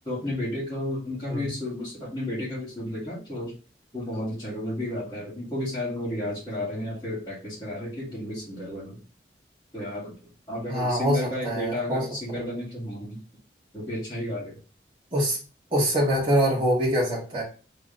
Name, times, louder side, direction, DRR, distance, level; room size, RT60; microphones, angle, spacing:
voice 1, 0.0-3.5 3.9-9.0 9.7-13.2 13.7-14.6, left 1 dB, 20° left, -13 dB, 2.3 m, -32 dB
voice 2, 10.7-12.4 15.1-15.4 15.7-17.4, equal, 30° right, -5 dB, 1.8 m, -24 dB
3.9 x 3.6 x 3.2 m, 0.36 s
head